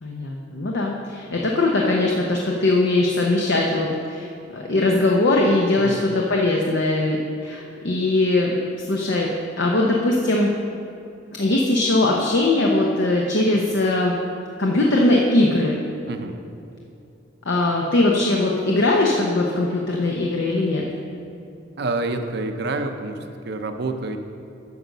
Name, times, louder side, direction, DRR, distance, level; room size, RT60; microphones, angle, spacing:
voice 1, 0.0-4.3 4.5-7.2 7.4-9.3 9.6-10.5 11.3-14.1 14.6-15.8 17.5-20.8, left 2 dB, 65° left, -1 dB, 0.8 m, -20 dB
voice 2, 16.1-16.4 21.8-23.2 23.4-24.2, right 2 dB, 55° right, 6 dB, 0.6 m, -27 dB
9.5 x 5.2 x 6.5 m, 2.6 s
head